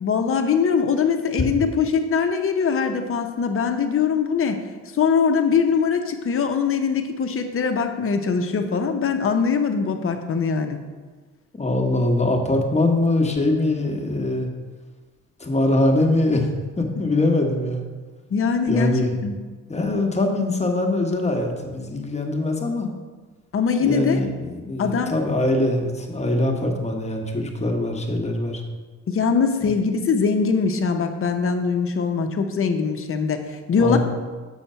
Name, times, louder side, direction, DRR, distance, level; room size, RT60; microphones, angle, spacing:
voice 1, 0.0-4.6 5.0-10.8 18.3-19.4 23.5-24.2 24.8-25.1 29.1-34.0, left 6 dB, 45° left, 6 dB, 0.9 m, -22 dB
voice 2, 11.5-14.5 15.4-16.5 16.8-17.8 18.7-19.1 19.7-22.9 23.8-28.6 33.8-34.0, left 2 dB, 20° left, 2 dB, 1.2 m, -22 dB
7.3 x 4.4 x 5.5 m, 1.4 s
cardioid pair, 90°, 30 cm